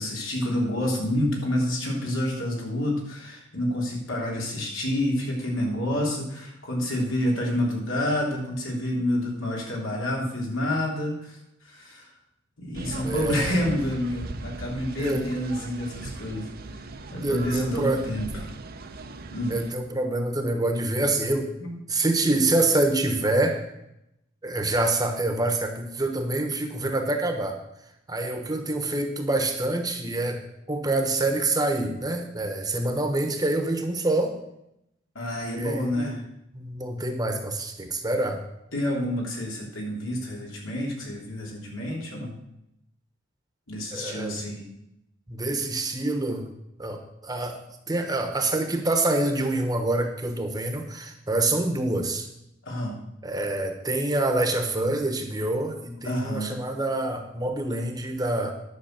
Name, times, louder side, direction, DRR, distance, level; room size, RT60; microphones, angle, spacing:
voice 1, 0.0-11.4 11.6-12.1 12.6-16.5 17.1-18.3 19.3-19.6 21.6-21.8 35.1-36.2 38.7-42.4 43.7-44.6 52.6-53.0 56.0-56.6, left 1 dB, 85° left, -2 dB, 3.2 m, -28 dB
sound 1, 12.7-19.7, right 2 dB, 50° right, 0.7 m, -38 dB
voice 2, 13.0-13.5 15.0-15.3 17.2-18.0 19.5-21.5 21.9-23.6 24.4-27.6 28.1-30.4 30.7-34.3 35.5-36.2 36.5-38.4 43.9-44.4 45.3-46.4 46.8-47.5 47.9-52.3 53.2-58.5, right 2 dB, 20° right, 5 dB, 1.1 m, -26 dB
10.5 x 6.4 x 6.5 m, 0.83 s
head